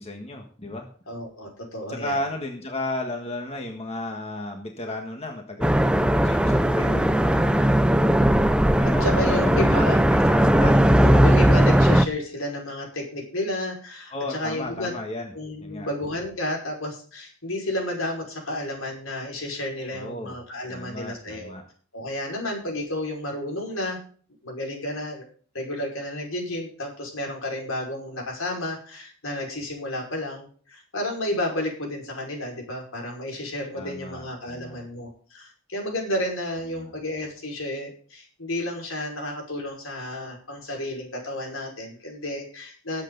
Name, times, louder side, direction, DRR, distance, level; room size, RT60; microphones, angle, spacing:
voice 1, 0.0-0.9 1.9-7.8 8.8-9.8 10.1-11.2 14.1-15.3 15.6-15.9 19.9-20.4 20.7-21.6 33.7-34.8 36.7-36.9, left 2 dB, 30° left, 3 dB, 1.6 m, -34 dB
voice 2, 1.1-2.2 6.6-7.1 8.8-10.0 10.8-14.9 15.3-21.5 21.9-24.0 24.4-25.2 25.5-43.0, left 1 dB, 80° left, 1 dB, 5.5 m, -31 dB
sound 1, 5.6-12.1, right 1 dB, 5° right, 0.5 m, -18 dB
19.0 x 8.1 x 4.0 m, 0.44 s
head